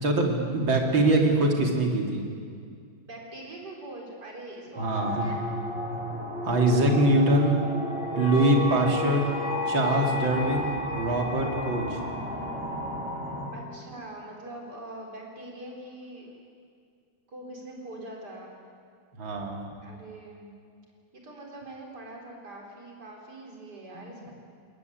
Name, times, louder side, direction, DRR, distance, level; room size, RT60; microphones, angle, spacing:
voice 1, 0.0-2.2 4.8-5.3 6.4-7.6 8.2-9.2 9.7-12.0 19.2-19.7 23.9-24.1, right 1 dB, 85° right, 1 dB, 3.6 m, -23 dB
voice 2, 3.1-5.4 13.5-16.3 17.3-18.5 19.8-20.5 21.1-24.3, right 1 dB, 55° right, 0 dB, 4.8 m, -43 dB
sound 1, 4.8-13.5, equal, 5° right, 5.2 m, -33 dB
sound 2, 7.9-12.9, left 5 dB, 90° left, 2.5 m, -37 dB
22.0 x 19.5 x 9.5 m, 2.2 s
omnidirectional pair, 2.1 m